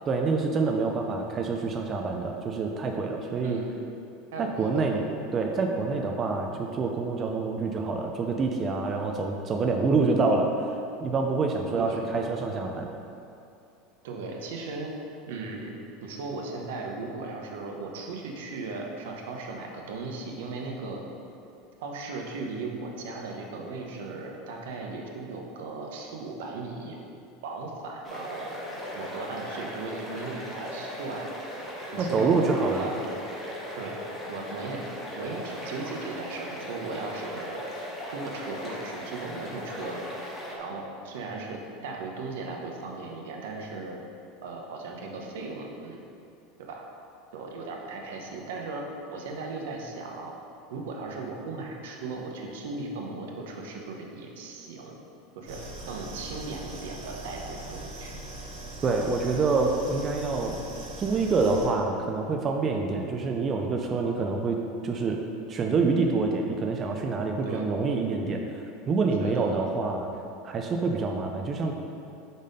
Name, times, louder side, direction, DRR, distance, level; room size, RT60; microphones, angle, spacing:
voice 1, 0.1-3.6 4.4-5.1 5.3-12.9 32.0-32.9 58.8-60.6 61.0-65.2 65.5-70.1 70.4-71.7, right 4 dB, 25° right, 2 dB, 0.4 m, -27 dB
voice 2, 4.3-4.9 11.8-12.0 14.0-15.0 15.3-21.0 21.8-27.0 27.4-28.5 28.9-31.3 31.9-32.3 32.6-33.2 33.8-34.0 34.3-34.8 35.2-37.6 38.1-40.0 40.6-44.0 44.4-46.0 46.7-46.8 47.3-50.3 50.7-55.0 55.4-55.6 55.8-58.2 67.4-67.7 69.2-69.6, right 3 dB, 80° right, 0 dB, 0.9 m, -37 dB
sound 1, 28.0-40.6, equal, 10° left, 1.0 m, -38 dB
sound 2, 55.5-61.7, right 1 dB, 55° right, 1.3 m, -41 dB
5.1 x 4.1 x 5.2 m, 2.6 s
supercardioid pair, 155°, 0 cm